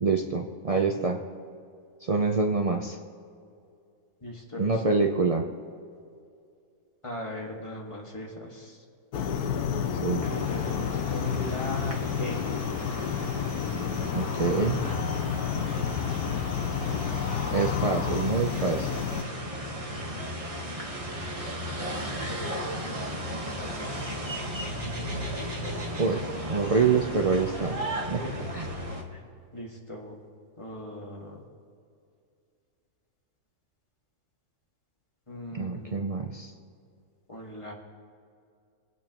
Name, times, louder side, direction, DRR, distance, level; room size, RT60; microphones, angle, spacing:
voice 1, 0.0-1.2 2.0-3.0 4.6-5.5 10.0-10.3 14.1-14.8 17.5-18.9 26.0-28.2 28.5-28.7 35.5-36.5, right 4 dB, 70° right, 2 dB, 0.3 m, -26 dB
voice 2, 4.2-4.8 7.0-8.8 10.3-12.4 28.2-28.3 28.7-28.8 29.1-29.2 29.5-30.2 30.6-31.4 35.3-36.0 37.3-37.7, left 1 dB, 20° left, -2 dB, 1.6 m, -39 dB
sound 1, 9.1-19.2, left 7 dB, 90° left, 1.2 m, -30 dB
sound 2, 10.2-29.0, equal, 25° right, 1.3 m, -36 dB
25.5 x 8.7 x 3.0 m, 2.4 s
omnidirectional pair, 1.6 m